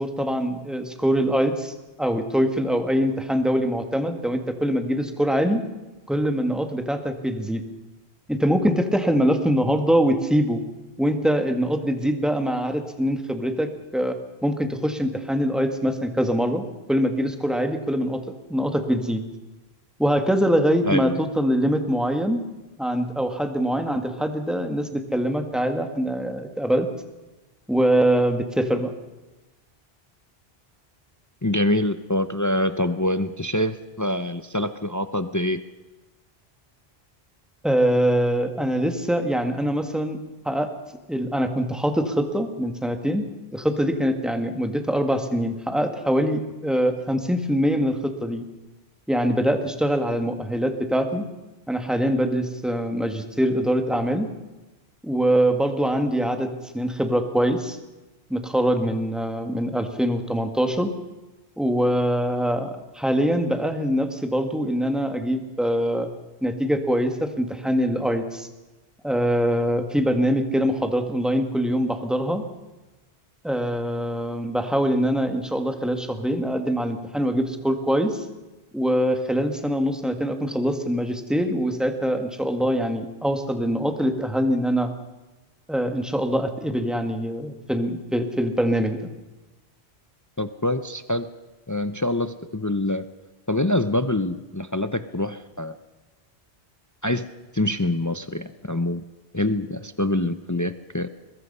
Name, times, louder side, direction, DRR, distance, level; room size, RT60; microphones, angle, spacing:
voice 1, 0.0-5.6 6.1-7.6 8.3-10.6 11.0-18.2 18.5-19.2 20.0-22.5 22.8-26.9 27.7-28.9 37.6-40.2 40.4-40.7 41.1-43.2 43.5-48.4 49.1-51.2 51.7-54.3 55.0-57.8 58.3-60.9 61.6-66.1 66.4-68.5 69.0-72.4 73.4-78.2 78.7-84.9 85.7-89.1, equal, ahead, 6 dB, 1.8 m, -23 dB
voice 2, 20.8-21.2 31.4-35.6 90.4-91.3 91.7-93.1 93.5-95.7 97.0-97.3 97.5-99.0 99.3-101.1, left 1 dB, 20° left, 11 dB, 0.6 m, -25 dB
22.0 x 21.5 x 5.6 m, 1.1 s
omnidirectional pair, 1.1 m